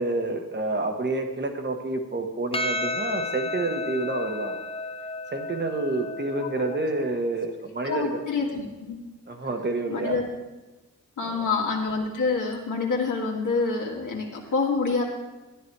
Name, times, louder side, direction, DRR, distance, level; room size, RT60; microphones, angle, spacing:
voice 1, 0.0-4.6 5.3-8.2 9.3-10.2 11.3-11.5, right 2 dB, 35° right, 5 dB, 1.2 m, -28 dB
Percussion, 2.5-7.2, left 2 dB, 20° left, 0.5 m, -33 dB
voice 2, 7.8-9.0 9.9-10.2 11.2-15.0, left 4 dB, 85° left, -2 dB, 2.0 m, -27 dB
12.5 x 10.0 x 4.6 m, 1.1 s
wide cardioid pair, 135°, 30 cm